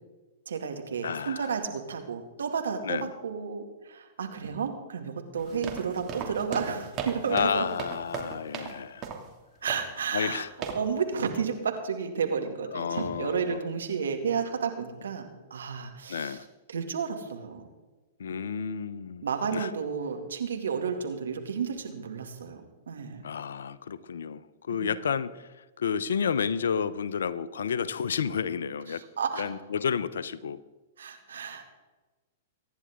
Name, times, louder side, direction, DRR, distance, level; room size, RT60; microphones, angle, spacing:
voice 1, 0.5-7.7 9.6-10.4 10.8-16.4 16.7-17.7 19.2-22.6 22.9-23.2 24.7-24.9 28.9-29.5 31.0-31.6, right 6 dB, 75° right, 5 dB, 2.3 m, -32 dB
voice 2, 1.0-1.6 2.8-3.1 7.3-9.1 10.1-10.5 12.7-13.6 16.1-16.5 18.2-19.3 19.5-19.7 23.2-29.0 29.4-30.6, left 7 dB, 75° left, 16 dB, 0.7 m, -31 dB
sound 1, 5.4-8.8 9.0-9.3 9.7-10.0 10.6-10.9, right 6 dB, 35° right, 2.6 m, -37 dB
24.0 x 10.5 x 3.7 m, 1.2 s
hypercardioid pair, 110°, 0 cm